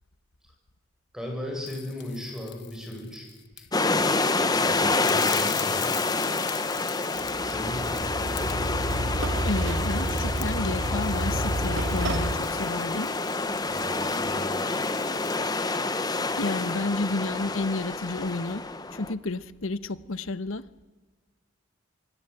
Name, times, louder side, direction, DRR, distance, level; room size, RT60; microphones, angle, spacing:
voice 1, 1.1-3.2 3.6-3.7 4.6-5.9 7.4-8.0 13.7-14.8, left 1 dB, 5° right, 1 dB, 7.5 m, -37 dB
sound 1, 1.7-3.8 4.6-15.4, left 14 dB, 55° left, 1.4 m, -42 dB
sound 2, 3.7-19.1, left 3 dB, 20° left, 1.1 m, -28 dB
sound 3, 7.2-12.3, right 1 dB, 65° right, 2.7 m, -30 dB
voice 2, 9.4-13.1 16.4-18.6 18.9-20.6, left 2 dB, 80° left, 14 dB, 1.1 m, -31 dB
25.0 x 20.0 x 8.7 m, 1.3 s
head